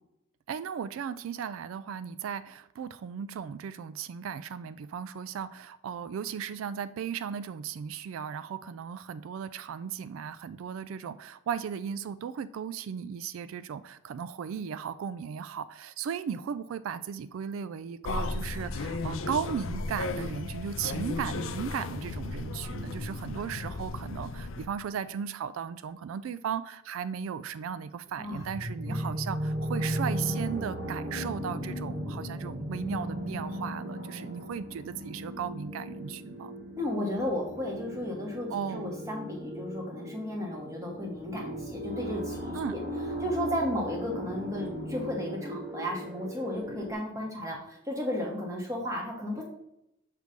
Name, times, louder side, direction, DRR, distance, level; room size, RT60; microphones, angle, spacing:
voice 1, 0.5-36.5 38.5-39.0 42.5-42.8, right 7 dB, 90° right, 14 dB, 0.3 m, -36 dB
sound 1, 18.0-24.7, left 3 dB, 85° left, 0.5 m, -35 dB
sound 2, 28.2-46.9, equal, 70° right, 1.3 m, -37 dB
voice 2, 36.8-42.8 43.2-49.5, left 1 dB, 15° right, -1 dB, 1.2 m, -34 dB
6.6 x 3.2 x 5.1 m, 0.82 s
head